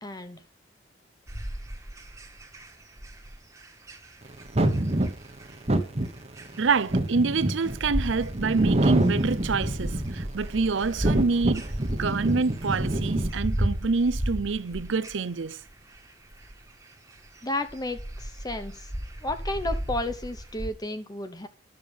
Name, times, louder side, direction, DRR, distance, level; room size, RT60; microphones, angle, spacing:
voice 1, 0.0-0.4 17.4-18.9 19.2-21.5, left 1 dB, 20° left, 0.9 m, -32 dB
sound 1, 1.3-20.7, equal, 15° right, 1.6 m, -35 dB
sound 2, 4.5-10.4 10.9-13.3, right 1 dB, 30° right, 1.2 m, -26 dB
voice 2, 6.6-11.7 11.9-15.6, right 4 dB, 70° right, 0.6 m, -26 dB
11.0 x 6.5 x 7.1 m
head